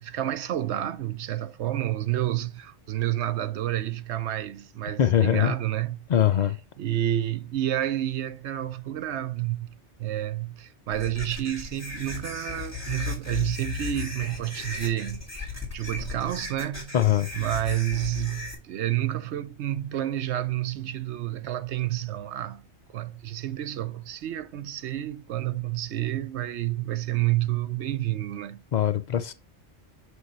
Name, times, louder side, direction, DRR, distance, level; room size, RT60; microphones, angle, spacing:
voice 1, 0.0-6.1 6.8-15.3 15.7-16.9 17.3-22.6 22.9-28.6, right 13 dB, 70° right, 0.8 m, -29 dB
voice 2, 5.0-5.5 6.1-6.6 16.9-17.3 28.7-29.3, left 10 dB, 60° left, 0.4 m, -22 dB
sound 1, 10.9-18.5, left 4 dB, 10° right, 2.2 m, -36 dB
6.3 x 5.4 x 3.0 m
omnidirectional pair, 1.3 m